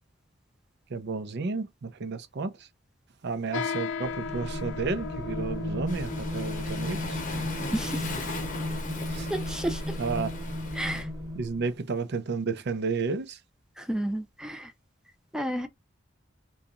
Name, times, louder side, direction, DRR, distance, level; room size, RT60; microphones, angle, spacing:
voice 1, 0.9-2.7 3.2-7.2 9.1-9.3 10.0-10.3 11.3-13.4, right 4 dB, 60° right, 0.6 m, -32 dB
sound 1, 3.5-11.3, left 6 dB, 70° left, 0.4 m, -39 dB
sound 2, 4.1-11.7, equal, 20° right, 1.1 m, -34 dB
Waves surf, 5.9-11.0, left 4 dB, 40° left, 0.7 m, -39 dB
voice 2, 7.7-8.1 9.3-10.0 10.8-11.1 13.8-14.7 15.3-15.7, right 1 dB, 5° right, 0.5 m, -31 dB
2.9 x 2.4 x 3.6 m
head